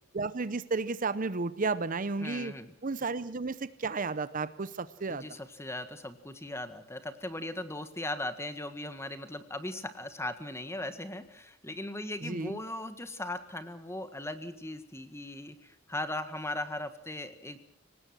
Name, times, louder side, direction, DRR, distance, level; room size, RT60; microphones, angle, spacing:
voice 1, 0.1-2.5 2.8-5.3 12.2-12.6, right 4 dB, 45° right, 15 dB, 0.7 m, -33 dB
voice 2, 2.2-2.7 5.1-17.6, left 1 dB, 15° left, 10 dB, 1.7 m, -38 dB
24.5 x 19.0 x 6.3 m, 0.71 s
head